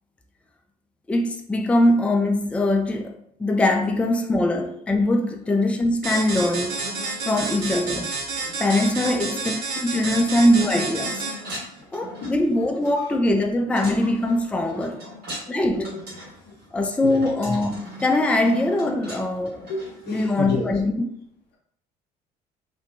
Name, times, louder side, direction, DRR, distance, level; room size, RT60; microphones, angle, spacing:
voice 1, 1.1-3.1 3.4-6.8 7.3-8.1 8.6-9.5 9.8-11.2 11.9-15.0 15.5-15.8 16.7-19.6 20.1-20.9, left 1 dB, 5° left, 0.3 m, -22 dB
sound 1, 6.0-11.6, right 4 dB, 75° right, 0.6 m, -30 dB
sound 2, 6.1-20.2, equal, 50° right, 1.4 m, -41 dB
voice 2, 9.0-9.4 11.6-12.4 13.6-13.7 15.0-15.1 15.4-16.1 16.5-16.6 17.0-17.3 19.7-20.7, left 3 dB, 55° left, 0.6 m, -33 dB
2.5 x 2.1 x 2.7 m
hypercardioid pair, 55°, 20 cm